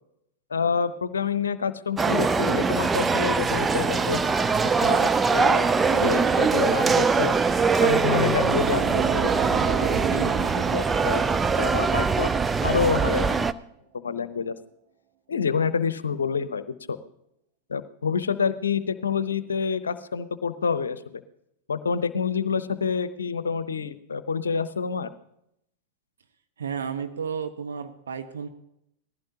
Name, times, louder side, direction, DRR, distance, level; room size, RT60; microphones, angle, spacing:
voice 1, 0.5-4.2 4.8-7.3 7.8-10.4 10.7-11.2 11.6-13.4 13.9-14.5 15.3-17.0 17.7-21.2 21.7-25.1, left 6 dB, 70° left, 14 dB, 0.8 m, -28 dB
sound 1, 2.0-13.5, right 5 dB, 15° right, 0.4 m, -22 dB
sound 2, 8.2-13.3, right 10 dB, 40° right, 1.0 m, -33 dB
voice 2, 26.6-28.5, right 6 dB, 70° right, 6 dB, 1.1 m, -32 dB
19.5 x 15.0 x 2.8 m, 0.80 s
figure-of-eight pair, 90°, 0 cm